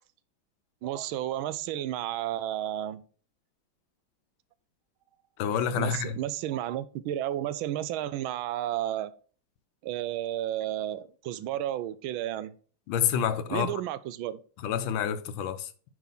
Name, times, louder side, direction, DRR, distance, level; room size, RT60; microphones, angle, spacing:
voice 1, 0.8-3.0 5.7-9.1 9.8-12.5 13.5-14.4, right 12 dB, 90° right, 1.4 m, -32 dB
voice 2, 5.4-6.2 12.9-13.8 14.6-15.7, left 8 dB, 80° left, 1.5 m, -28 dB
9.3 x 5.0 x 4.1 m
omnidirectional pair, 2.2 m